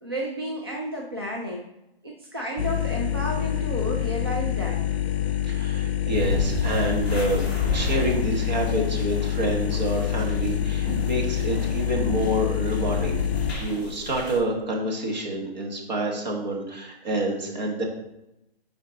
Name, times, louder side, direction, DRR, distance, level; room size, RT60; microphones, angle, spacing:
voice 1, 0.0-1.6 2.0-4.8, equal, 25° right, -2 dB, 0.4 m, -32 dB
sound 1, 2.6-13.5, left 11 dB, 80° left, 0.5 m, -26 dB
voice 2, 5.4-13.2 13.6-17.8, right 1 dB, 45° right, 0 dB, 1.5 m, -28 dB
sound 2, 6.1-14.4, left 1 dB, ahead, 0.9 m, -32 dB
6.4 x 4.4 x 3.8 m, 0.89 s
hypercardioid pair, 165°, 31 cm